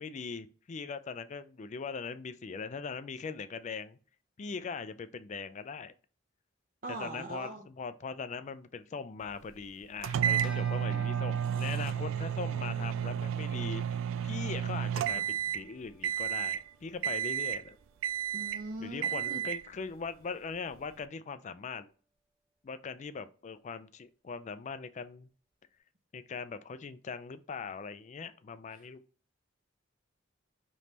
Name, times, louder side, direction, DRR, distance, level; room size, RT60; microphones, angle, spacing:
voice 1, 0.0-4.0 4.4-5.9 6.9-17.8 18.8-21.9 22.6-25.3 26.1-29.0, left 5 dB, 35° left, 0.4 m, -41 dB
voice 2, 6.8-7.7 18.3-19.4 28.7-28.9, right 2 dB, 45° right, 0.6 m, -41 dB
sound 1, 10.0-15.7 16.0-16.6 17.0-17.7 18.0-18.6 19.0-19.7, right 9 dB, 80° right, 0.3 m, -32 dB
Bell, 10.4-20.1, equal, 5° right, 0.7 m, -56 dB
5.1 x 3.1 x 2.8 m
head